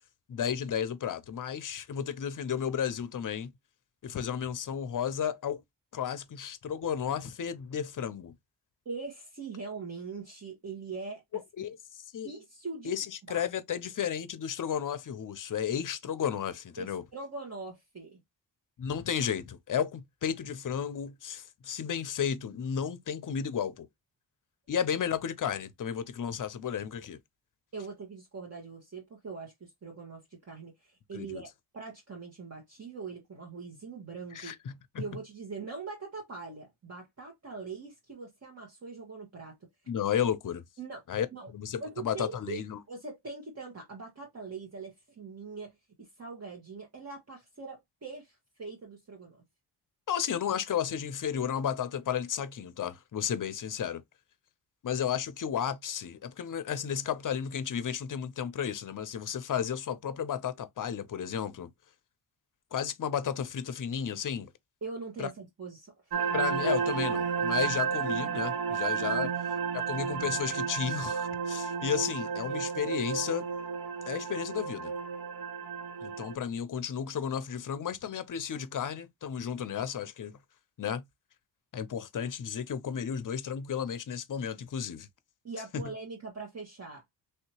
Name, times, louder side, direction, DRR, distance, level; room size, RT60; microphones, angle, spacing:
voice 1, 0.3-3.5 4.0-5.6 5.9-8.3 11.6-12.3 12.8-17.0 18.8-23.9 24.7-27.2 31.1-31.4 34.3-35.0 39.9-40.6 41.1-42.8 50.1-54.0 54.8-61.7 62.7-64.5 65.2-65.3 66.3-69.3 69.7-73.4 74.0-74.9 76.0-80.4 80.8-81.0 81.7-85.1 85.7-85.8, left 8 dB, 45° left, 0.6 m, -33 dB
voice 2, 8.8-11.2 12.2-12.9 13.3-13.4 16.8-18.2 27.7-31.5 31.7-34.5 35.0-39.6 40.8-41.0 41.3-41.5 41.8-49.4 64.8-66.2 69.2-69.6 85.4-87.0, right 4 dB, 35° right, 1.3 m, -42 dB
sound 1, 66.1-76.4, right 6 dB, 60° right, 0.7 m, -32 dB
3.4 x 2.7 x 2.8 m
cardioid pair, 85°, 43 cm